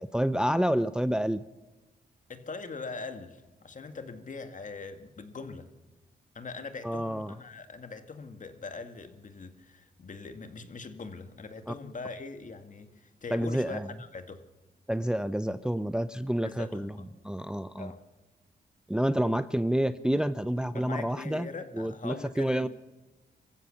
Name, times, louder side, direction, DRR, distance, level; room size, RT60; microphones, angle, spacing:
voice 1, 0.0-1.4 6.8-7.4 11.7-11.8 13.3-13.9 14.9-17.0 17.2-17.9 18.9-21.5 21.7-22.7, right 1 dB, 5° right, 13 dB, 0.6 m, -29 dB
voice 2, 2.3-5.7 6.3-14.4 16.4-17.1 17.8-18.0 20.7-22.7, left 4 dB, 45° left, 7 dB, 2.1 m, -42 dB
26.0 x 15.0 x 6.6 m, 1.1 s
cardioid pair, 80°, 17 cm